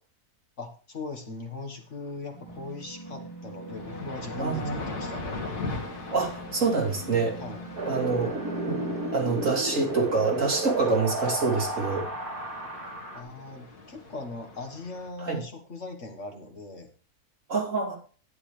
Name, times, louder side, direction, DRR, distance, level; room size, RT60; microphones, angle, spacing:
voice 1, 0.6-5.3 7.4-7.6 13.1-16.9, left 3 dB, 50° left, 4 dB, 1.8 m, -39 dB
sound 1, 2.1-2.2 2.5-15.1, left 3 dB, 80° left, 2.1 m, -40 dB
sound 2, 2.3-11.0, right 3 dB, 15° left, 1.7 m, -42 dB
voice 2, 4.4-4.9 6.1-7.3 7.8-8.4 8.6-8.8 9.1-12.1 15.2-15.4 17.5-18.0, right 4 dB, 55° right, -2 dB, 3.2 m, -26 dB
Wind, 7.8-13.2, right 1 dB, 75° right, 2.5 m, -33 dB
11.5 x 9.7 x 3.2 m, 0.38 s
omnidirectional pair, 1.6 m